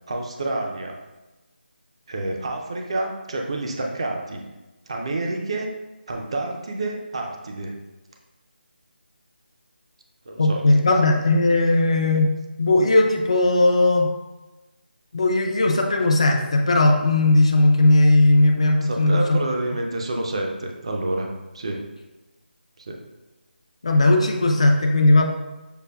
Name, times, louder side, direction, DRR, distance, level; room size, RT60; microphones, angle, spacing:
voice 1, 0.1-1.0 2.1-4.4 4.9-5.7 6.1-7.7 10.3-10.6 18.8-21.3 21.5-21.8 22.8-23.0, right 2 dB, 30° right, 1 dB, 0.4 m, -28 dB
voice 2, 10.4-12.3 12.6-14.1 15.1-19.4 23.8-25.2, left 2 dB, 35° left, 2 dB, 0.4 m, -17 dB
6.6 x 2.5 x 2.2 m, 1.1 s
figure-of-eight pair, 175°, 6 cm